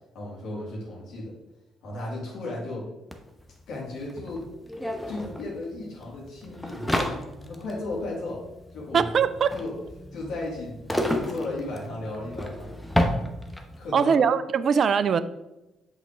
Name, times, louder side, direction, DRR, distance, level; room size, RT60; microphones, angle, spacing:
voice 1, 0.1-1.3 1.8-2.9 3.7-4.5 5.1-7.1 7.4-8.4 8.7-9.1 9.5-9.7 10.1-12.7 13.8-14.2, left 2 dB, 60° left, 2.2 m, -35 dB
sound 1, 3.1-3.2 3.4-13.9, left 1 dB, 5° left, 0.9 m, -31 dB
voice 2, 8.9-9.5 13.9-15.2, right 6 dB, 45° right, 0.3 m, -21 dB
8.1 x 3.9 x 3.5 m
figure-of-eight pair, 45°, 0 cm